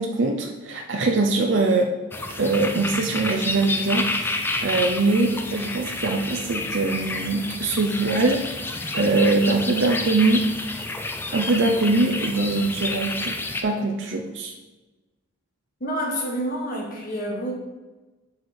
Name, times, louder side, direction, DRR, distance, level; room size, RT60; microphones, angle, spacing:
voice 1, 0.0-1.9 2.4-8.4 8.9-10.5 11.3-13.4 13.6-14.5, right 3 dB, 60° right, 2 dB, 0.6 m, -22 dB
sound 1, 2.1-13.6, left 2 dB, 10° left, 0.3 m, -29 dB
voice 2, 15.8-17.5, equal, 40° left, -1 dB, 1.5 m, -28 dB
7.3 x 4.6 x 4.3 m, 1.2 s
head